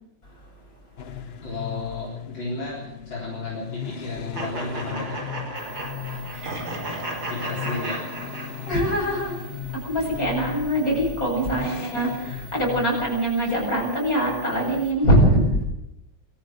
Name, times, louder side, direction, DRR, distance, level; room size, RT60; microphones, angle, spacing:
voice 1, 0.2-0.8 1.2-1.3 8.7-9.4 9.7-15.6, equal, 40° left, -1 dB, 8.6 m, -23 dB
sound 1, 1.0-13.2, left 8 dB, 90° left, 0.5 m, -37 dB
voice 2, 1.4-5.2 7.3-8.0, left 3 dB, 65° left, -4 dB, 4.8 m, -33 dB
sound 2, 4.3-9.0, right 1 dB, 45° right, 4.4 m, -34 dB
sound 3, 5.5-14.9, right 10 dB, 90° right, 3.9 m, -47 dB
23.0 x 14.5 x 7.9 m, 0.81 s
omnidirectional pair, 2.3 m